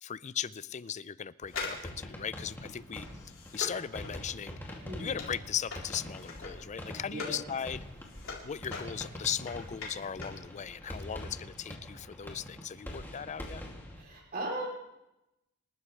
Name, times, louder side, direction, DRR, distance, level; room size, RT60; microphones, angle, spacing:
voice 1, 0.0-4.6 5.0-7.8 8.4-13.6, left 8 dB, 35° left, 17 dB, 0.4 m, -38 dB
sound 1, 1.4-14.0, left 1 dB, 10° left, 2.5 m, -45 dB
sound 2, 1.5-7.4 7.8-10.5 10.7-10.8, left 4 dB, 70° left, 3.7 m, -43 dB
voice 2, 4.8-5.2 6.9-7.4 13.9-14.7, right 1 dB, 45° right, -2 dB, 3.3 m, -38 dB
27.5 x 12.5 x 3.3 m, 0.92 s
head